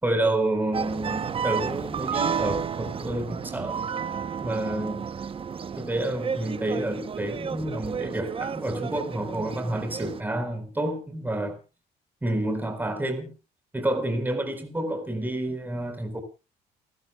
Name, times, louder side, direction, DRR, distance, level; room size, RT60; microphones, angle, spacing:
voice 1, 0.0-3.8 4.4-5.1 5.8-11.6 12.2-13.3 13.7-16.2, right 1 dB, 10° right, 7 dB, 4.3 m, -29 dB
sound 1, 0.7-10.2, right 6 dB, 35° right, 0.9 m, -32 dB
30.0 x 12.0 x 2.3 m, 0.31 s
cardioid pair, 110°, 17 cm